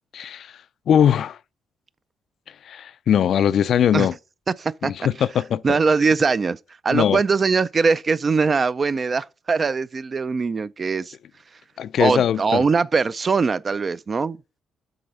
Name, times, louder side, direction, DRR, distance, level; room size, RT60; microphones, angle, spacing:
voice 1, 0.1-0.5 0.9-1.4 2.6-4.2 4.8-5.8 6.9-7.2 11.8-12.6, left 9 dB, 65° left, 0.3 m, -20 dB
voice 2, 4.6-4.9 5.6-6.6 6.8-11.1 12.0-14.4, right 4 dB, 35° right, 0.3 m, -21 dB
7.7 x 4.0 x 5.4 m
cardioid pair, 90°, 0 cm